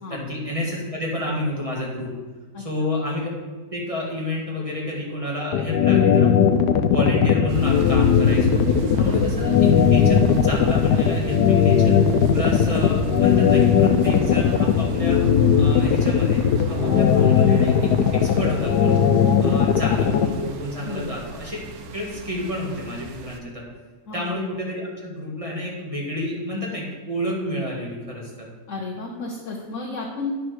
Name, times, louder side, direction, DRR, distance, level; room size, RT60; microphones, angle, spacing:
voice 1, 0.1-2.1 2.6-3.3 3.7-6.3 6.8-12.0 12.3-15.2 15.6-19.0 19.4-21.6 21.9-23.6 24.1-28.5, left 1 dB, 20° right, -3 dB, 2.0 m, -29 dB
sound 1, 5.5-20.3, left 8 dB, 90° left, 1.2 m, -18 dB
sound 2, 7.5-23.4, right 4 dB, 70° right, 1.2 m, -33 dB
voice 2, 20.8-21.1 24.1-24.3 28.7-30.3, left 3 dB, 55° left, -1 dB, 1.3 m, -32 dB
9.4 x 5.0 x 6.2 m, 1.4 s
omnidirectional pair, 1.7 m